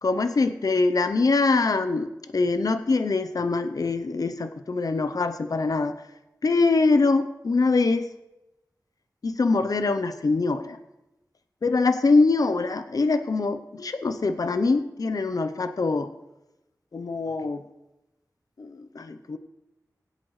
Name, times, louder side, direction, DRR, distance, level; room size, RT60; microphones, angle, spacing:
voice 1, 0.0-6.0 6.4-8.1 9.2-10.8 11.6-16.1 16.9-17.7 18.6-19.4, left 3 dB, 65° left, 10 dB, 0.7 m, -23 dB
22.5 x 8.5 x 3.2 m, 0.96 s
wide cardioid pair, 80°, 7 cm